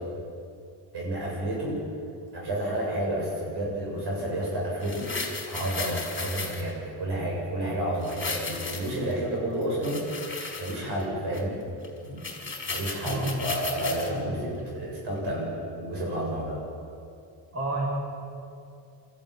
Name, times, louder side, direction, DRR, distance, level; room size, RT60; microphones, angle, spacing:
voice 1, 0.9-1.8 2.3-5.1 5.5-11.5 12.1-12.2 12.7-16.6, right 1 dB, 55° right, -3 dB, 7.8 m, -30 dB
sound 1, 4.8-6.7 8.0-9.1 9.6-11.0 11.3-11.4 11.8-11.9 12.2-14.1 14.6-14.7, left 4 dB, 25° left, 4.1 m, -35 dB
voice 2, 14.0-14.5 17.5-17.9, right 2 dB, 30° right, -3 dB, 7.5 m, -31 dB
24.0 x 14.0 x 9.6 m, 2.5 s
cardioid pair, 115°, 47 cm